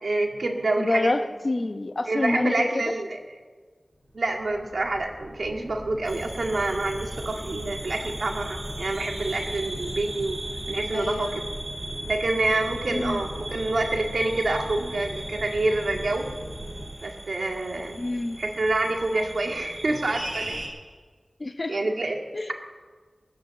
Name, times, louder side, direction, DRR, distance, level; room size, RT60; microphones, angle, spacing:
voice 1, 0.0-1.2 2.1-3.2 4.1-10.4 10.7-11.4 12.0-16.3 17.0-18.0 18.4-20.6 21.7-22.2, right 2 dB, 80° right, 2 dB, 2.0 m, -27 dB
voice 2, 0.8-2.8 10.9-11.4 12.9-13.2 18.0-18.4 21.4-21.8 22.3-22.5, left 2 dB, 50° left, 8 dB, 1.0 m, -27 dB
sound 1, 4.0-16.9, equal, ahead, 5.9 m, -39 dB
sound 2, 6.0-20.7, right 1 dB, 60° right, 5.2 m, -38 dB
20.0 x 9.4 x 7.1 m, 1.5 s
wide cardioid pair, 55°, 0 cm